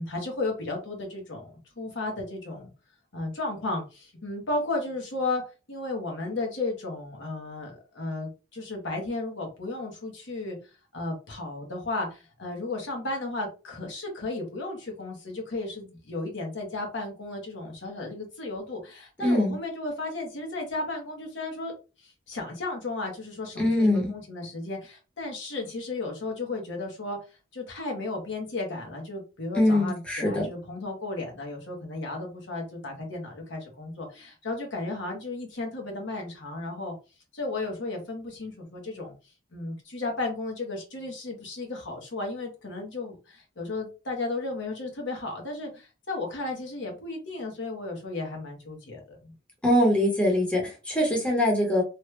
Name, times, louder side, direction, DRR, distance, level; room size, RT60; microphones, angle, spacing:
voice 1, 0.0-2.7 3.1-5.4 5.7-10.6 10.9-21.7 22.0-27.2 27.5-36.9 37.3-39.1 39.5-49.3, left 2 dB, 65° left, 0 dB, 1.1 m, -34 dB
voice 2, 19.2-19.5 23.6-24.1 29.5-30.5 49.6-51.8, left 1 dB, 5° left, -2 dB, 1.0 m, -23 dB
3.0 x 2.3 x 3.1 m, 0.31 s
head